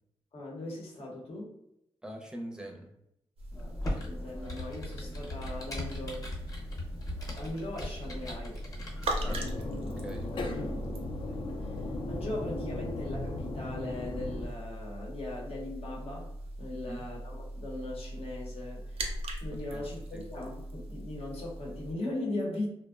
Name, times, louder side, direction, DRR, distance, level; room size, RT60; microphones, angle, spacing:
voice 1, 0.3-1.6 3.8-6.3 7.3-8.6 10.3-10.7 11.3-11.8 12.1-16.3 16.6-22.7, left 2 dB, 70° left, -2 dB, 0.8 m, -39 dB
voice 2, 2.0-2.9 9.2-9.5 10.0-10.8 16.7-17.1 19.7-19.8 20.1-20.2, equal, 5° right, 1 dB, 0.5 m, -43 dB
sound 1, 3.4-21.9, right 1 dB, 70° right, 0.5 m, -40 dB
Computer keyboard, 3.5-9.3, left 1 dB, 35° left, 0.8 m, -39 dB
sound 2, 9.2-14.5, left 2 dB, 55° left, 0.3 m, -36 dB
2.6 x 2.0 x 2.3 m, 0.80 s
cardioid pair, 85°, 10 cm